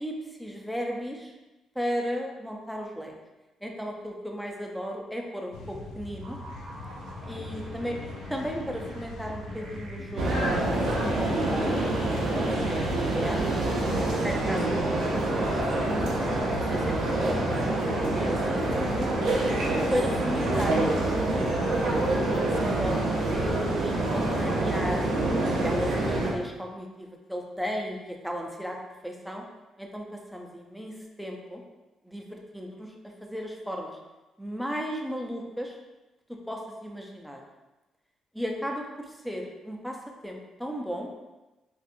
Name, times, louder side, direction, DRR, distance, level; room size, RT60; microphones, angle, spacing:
voice 1, 0.0-1.3 1.8-3.1 3.6-6.4 7.3-8.0 8.3-11.8 12.1-13.6 14.2-14.8 15.3-17.4 18.1-18.4 18.7-19.1 19.9-21.5 22.0-25.1 25.6-28.8 29.0-29.4 29.8-31.6 32.0-34.0 34.4-35.8 36.5-37.4 38.3-40.0 40.2-41.1, equal, ahead, 1 dB, 0.5 m, -35 dB
sound 1, 5.5-12.3 14.9-15.0, left 2 dB, 85° left, 0.4 m, -43 dB
sound 2, 6.2-18.1, equal, 65° right, 1.0 m, -44 dB
sound 3, 10.2-26.3, right 2 dB, 90° right, 0.7 m, -26 dB
4.2 x 2.5 x 2.6 m, 1.1 s
cardioid pair, 90°, 0 cm